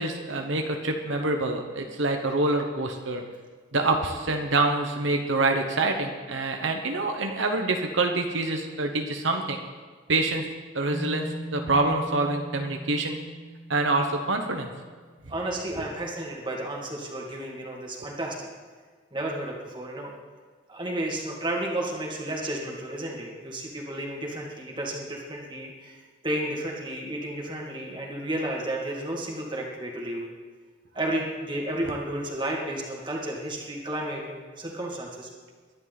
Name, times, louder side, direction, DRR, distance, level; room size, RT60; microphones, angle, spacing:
voice 1, 0.0-3.2 3.7-9.6 10.1-10.4 10.7-13.2 13.7-14.7, right 2 dB, 75° right, 3 dB, 1.2 m, -26 dB
sound 1, 10.9-15.2, right 1 dB, 10° left, 2.6 m, -40 dB
voice 2, 15.3-18.5 19.1-20.1 20.7-26.0 26.2-30.3 30.9-35.3, right 1 dB, 25° right, -1 dB, 2.3 m, -32 dB
22.0 x 10.5 x 4.1 m, 1.5 s
head